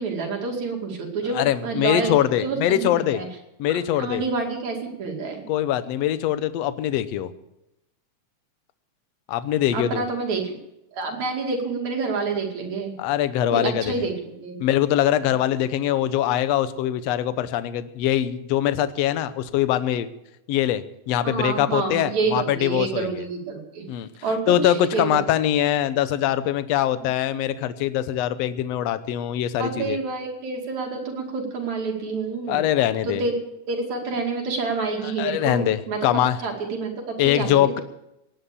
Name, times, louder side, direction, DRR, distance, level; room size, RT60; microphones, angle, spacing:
voice 1, 0.0-2.1 2.4-3.3 3.7-5.4 9.7-10.6 10.9-12.9 13.5-14.6 21.2-23.9 24.2-25.2 29.6-32.6 33.0-33.4 33.7-36.0 36.4-37.5, right 4 dB, 65° right, 1 dB, 3.8 m, -28 dB
voice 2, 1.3-3.2 3.6-4.2 5.5-7.3 9.3-10.0 13.0-14.1 14.6-20.1 20.5-23.2 23.9-24.1 24.5-30.0 32.5-33.2 35.0-36.4 37.2-37.8, left 11 dB, 70° left, 13 dB, 1.7 m, -23 dB
18.0 x 10.0 x 6.9 m, 0.87 s
omnidirectional pair, 3.6 m